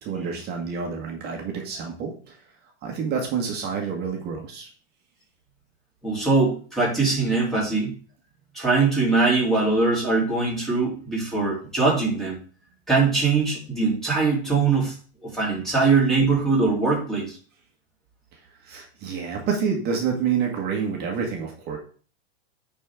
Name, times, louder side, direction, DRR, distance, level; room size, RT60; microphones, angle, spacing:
voice 1, 0.0-2.4 2.8-4.7 18.6-21.8, right 6 dB, 30° right, 1 dB, 1.6 m, -28 dB
voice 2, 6.0-7.9 8.5-12.4 12.9-15.0 15.2-17.3, right 4 dB, ahead, -5 dB, 3.0 m, -22 dB
9.6 x 4.3 x 3.7 m, 0.42 s
hypercardioid pair, 140°, 32 cm